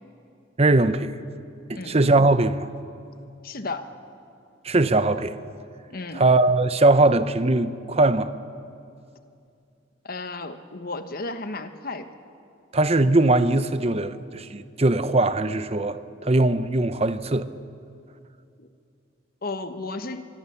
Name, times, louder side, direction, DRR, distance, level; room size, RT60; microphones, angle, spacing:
voice 1, 0.6-1.1 1.7-2.7 4.6-5.4 6.1-8.3 12.7-17.5, right 2 dB, 30° right, 0.8 m, -20 dB
voice 2, 3.4-3.9 5.9-6.2 10.0-12.1 18.6-18.7 19.4-20.3, left 3 dB, 50° left, 1.3 m, -33 dB
25.5 x 22.5 x 7.1 m
head